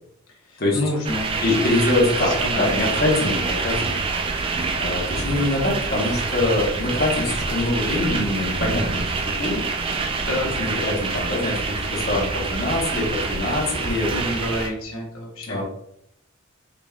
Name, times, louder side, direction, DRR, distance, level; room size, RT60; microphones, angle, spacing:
voice 1, 0.3-1.5 2.0-2.9 10.2-10.5 14.1-15.6, left 1 dB, 85° left, -1 dB, 0.9 m, -29 dB
sound 1, 1.0-14.7, right 4 dB, 25° right, 0.3 m, -26 dB
voice 2, 1.4-4.0 4.8-9.6 10.6-14.1 15.5-15.6, left 2 dB, 45° left, -3 dB, 1.0 m, -24 dB
3.9 x 3.6 x 2.3 m, 0.75 s
head